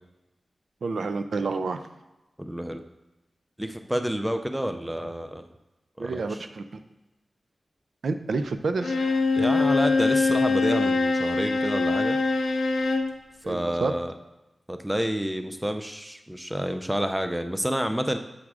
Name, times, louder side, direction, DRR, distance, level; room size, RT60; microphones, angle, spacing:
voice 1, 0.8-1.8 6.0-6.3 8.0-8.9 13.4-13.9, right 4 dB, 80° right, 9 dB, 0.4 m, -28 dB
voice 2, 2.4-2.8 3.6-5.5 6.0-6.5 9.4-12.2 13.5-14.1 14.7-18.2, equal, 5° right, 8 dB, 0.4 m, -29 dB
Bowed string instrument, 8.8-13.1, left 3 dB, 85° left, 0.6 m, -23 dB
7.3 x 3.7 x 4.8 m, 1.0 s
wide cardioid pair, 130°, 0 cm